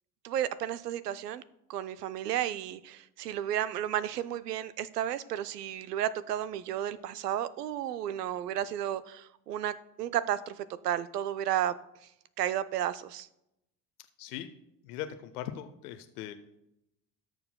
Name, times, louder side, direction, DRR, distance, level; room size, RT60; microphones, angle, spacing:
voice 1, 0.2-1.4 1.7-11.7 12.4-13.3, right 11 dB, 85° right, 15 dB, 0.6 m, -33 dB
voice 2, 14.8-16.4, left 11 dB, 75° left, 9 dB, 0.8 m, -40 dB
18.0 x 6.9 x 2.2 m, 0.84 s
figure-of-eight pair, 60°, 46 cm